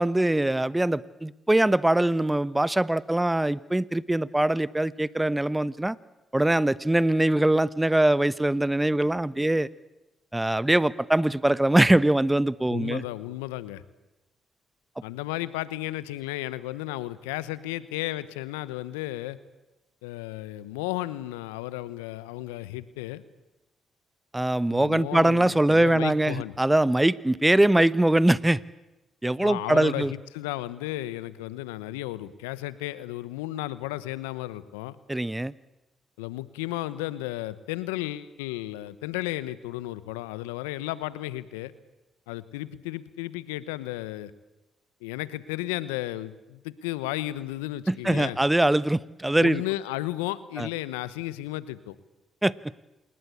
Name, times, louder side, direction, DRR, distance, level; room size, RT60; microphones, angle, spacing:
voice 1, 0.0-6.0 6.3-9.7 10.3-13.0 24.3-28.6 29.2-30.1 35.1-35.5 47.9-49.6 50.6-50.7 52.4-52.5, right 1 dB, 15° right, 19 dB, 1.0 m, -22 dB
voice 2, 12.7-13.8 15.0-19.4 20.0-23.2 24.7-26.5 29.4-35.0 36.2-41.7 42.3-44.3 45.0-48.4 49.4-52.0, left 16 dB, 85° left, 17 dB, 0.9 m, -34 dB
28.0 x 20.0 x 8.4 m, 0.98 s
hypercardioid pair, 45°, 0 cm